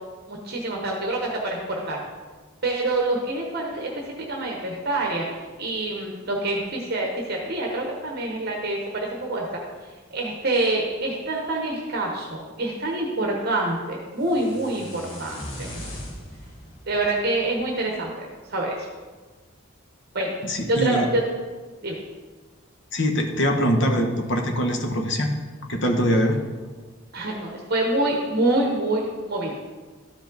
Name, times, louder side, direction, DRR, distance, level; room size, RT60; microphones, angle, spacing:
voice 1, 0.3-2.0 2.6-3.9 4.3-5.3 5.6-9.6 10.1-15.7 16.9-18.9 20.1-20.4 20.7-21.2 21.8-22.0 27.1-29.6, right 2 dB, 45° right, 0 dB, 1.0 m, -26 dB
sound 1, 14.2-18.3, equal, 75° left, 1.9 m, -39 dB
voice 2, 20.4-21.1 22.9-25.3 25.7-26.4, equal, 55° left, 3 dB, 1.0 m, -23 dB
12.0 x 5.1 x 3.9 m, 1.4 s
head